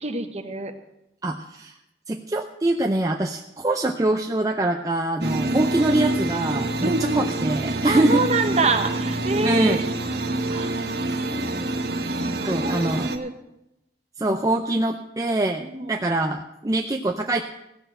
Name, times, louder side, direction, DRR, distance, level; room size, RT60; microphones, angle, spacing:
voice 1, 0.0-0.7 5.4-5.7 6.8-7.2 7.8-9.8 10.5-10.7 12.2-13.3 14.3-14.4 15.6-15.9, right 3 dB, 40° right, 6 dB, 1.2 m, -26 dB
voice 2, 1.2-1.7 2.1-8.3 9.4-9.8 11.1-11.3 12.5-13.1 14.2-17.4, right 1 dB, 20° right, 3 dB, 0.6 m, -24 dB
sound 1, 5.2-13.2, right 2 dB, 65° right, 1.3 m, -26 dB
16.0 x 6.5 x 7.9 m, 0.87 s
head